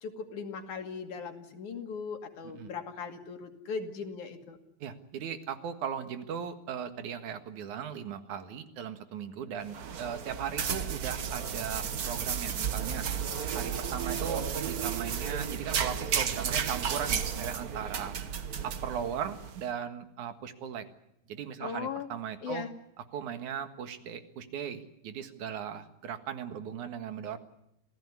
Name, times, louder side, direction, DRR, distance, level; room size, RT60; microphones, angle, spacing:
voice 1, 0.0-4.6 21.6-22.1 22.4-22.7, left 5 dB, 85° left, 5 dB, 3.7 m, -38 dB
voice 2, 4.8-13.1 13.5-18.2 18.6-20.9 21.3-22.6 23.1-27.4, right 8 dB, 85° right, 8 dB, 3.1 m, -38 dB
sound 1, 9.6-19.6, right 7 dB, 60° right, 0.9 m, -33 dB
26.5 x 17.0 x 9.7 m, 0.79 s
omnidirectional pair, 3.4 m